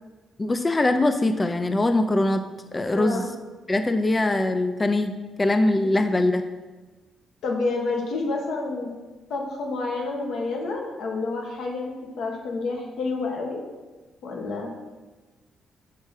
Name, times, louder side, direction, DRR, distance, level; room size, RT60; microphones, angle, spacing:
voice 1, 0.4-2.4 2.7-3.3 3.7-5.1 5.4-6.4, left 2 dB, 20° left, 8 dB, 0.5 m, -22 dB
voice 2, 2.9-3.3 7.4-8.9 9.3-11.9 12.2-13.6 14.2-14.7, left 3 dB, 70° left, 0 dB, 1.8 m, -29 dB
6.5 x 6.2 x 5.5 m, 1.2 s
cardioid pair, 90°, 0 cm